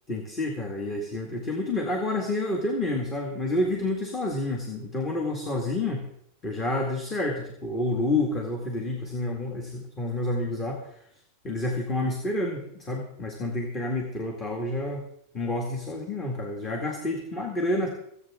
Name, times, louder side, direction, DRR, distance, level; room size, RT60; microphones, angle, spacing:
voice 1, 0.1-6.1 6.4-10.8 11.4-15.0 15.3-17.9, left 2 dB, 20° left, 2 dB, 2.0 m, -29 dB
24.5 x 8.5 x 3.7 m, 0.72 s
supercardioid pair, 145°, 0 cm